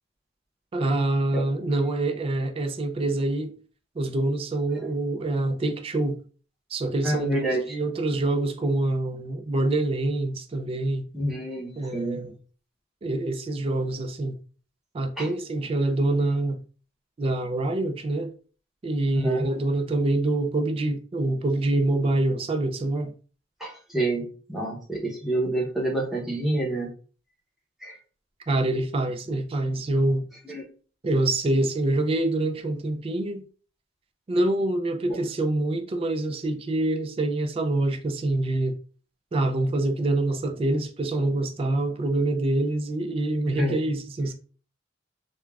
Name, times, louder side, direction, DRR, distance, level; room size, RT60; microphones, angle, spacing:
voice 1, 0.7-3.5 4.0-6.2 6.7-11.1 11.8-12.3 13.0-14.4 14.9-16.6 17.2-18.3 18.8-23.1 28.5-30.3 31.0-33.5 34.3-38.8 39.3-44.3, right 2 dB, 30° right, 0.3 m, -25 dB
voice 2, 7.0-7.8 11.1-12.3 15.2-15.3 19.1-19.5 23.6-26.9 27.8-28.0 30.5-30.6 35.1-35.2 43.5-43.7, right 1 dB, ahead, 0.7 m, -28 dB
3.3 x 2.1 x 2.3 m
head